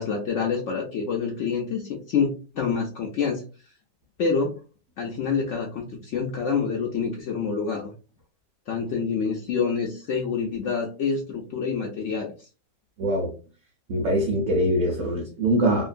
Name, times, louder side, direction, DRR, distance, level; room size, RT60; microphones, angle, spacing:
voice 1, 0.0-3.4 4.2-4.6 5.0-7.9 8.7-12.5, left 5 dB, 85° left, 0 dB, 0.6 m, -27 dB
voice 2, 13.0-13.3 13.9-15.9, right 1 dB, 60° right, -1 dB, 0.9 m, -23 dB
2.9 x 2.4 x 2.4 m, 0.35 s
omnidirectional pair, 1.8 m